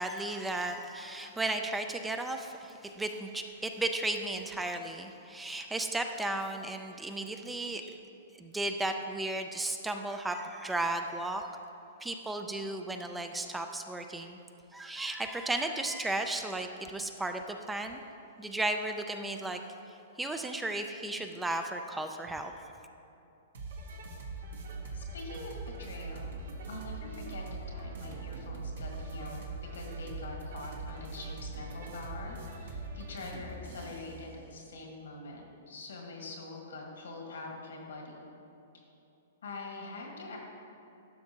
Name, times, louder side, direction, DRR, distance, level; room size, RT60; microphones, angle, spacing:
voice 1, 0.0-8.0 8.4-11.6 12.0-14.4 14.7-18.0 18.4-19.6 19.9-22.7, right 2 dB, 5° right, 6 dB, 0.4 m, -35 dB
sound 1, 23.5-34.1, right 3 dB, 75° right, 1.2 m, -41 dB
voice 2, 24.9-26.3 26.7-29.4 29.7-38.3 39.4-40.4, left 2 dB, 90° left, -1 dB, 1.7 m, -44 dB
12.0 x 5.8 x 2.9 m, 2.9 s
hypercardioid pair, 140°, 0 cm